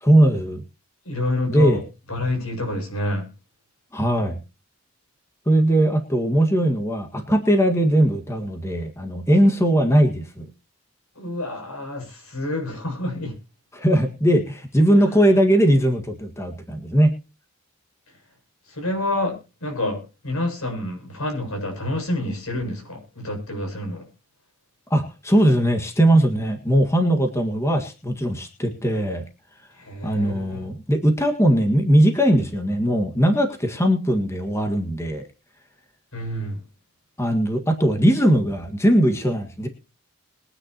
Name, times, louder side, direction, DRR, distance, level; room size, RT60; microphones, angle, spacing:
voice 1, 0.0-0.6 1.5-1.8 3.9-4.4 5.5-10.5 13.7-17.2 24.9-29.2 30.0-35.2 37.2-39.7, right 1 dB, 15° left, 4 dB, 1.7 m, -19 dB
voice 2, 1.1-1.8 2.1-3.2 11.2-13.3 18.8-19.4 19.6-20.0 20.2-24.0 29.9-30.6 36.1-36.6, left 1 dB, 85° left, 3 dB, 7.2 m, -28 dB
22.5 x 9.8 x 2.9 m, 0.31 s
head